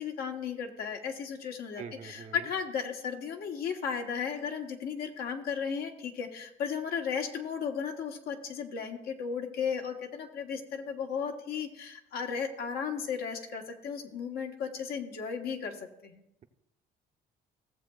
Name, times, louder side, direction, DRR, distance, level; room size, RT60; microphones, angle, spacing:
voice 1, 0.0-15.8 16.0-16.2, left 6 dB, 65° left, 4 dB, 1.2 m, -35 dB
voice 2, 1.8-2.5, right 6 dB, 45° right, 7 dB, 0.7 m, -44 dB
16.5 x 7.3 x 2.4 m, 0.85 s
cardioid pair, 110°, 17 cm